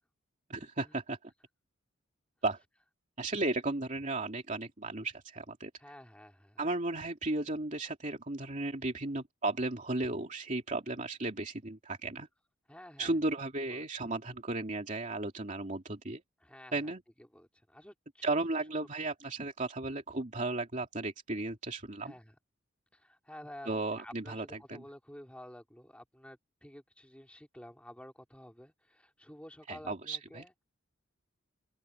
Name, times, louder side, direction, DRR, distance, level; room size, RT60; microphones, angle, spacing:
voice 1, 0.5-1.3 2.4-2.6 3.2-5.7 6.6-12.3 13.0-16.2 16.7-17.0 18.2-22.1 23.7-24.8 29.7-30.4, right 2 dB, 40° right, 2.7 m, -35 dB
voice 2, 5.8-6.6 12.7-13.2 13.7-13.8 16.4-16.9 17.2-18.4 22.0-22.3 22.9-23.7 24.0-30.6, left 1 dB, 5° left, 4.0 m, -51 dB
head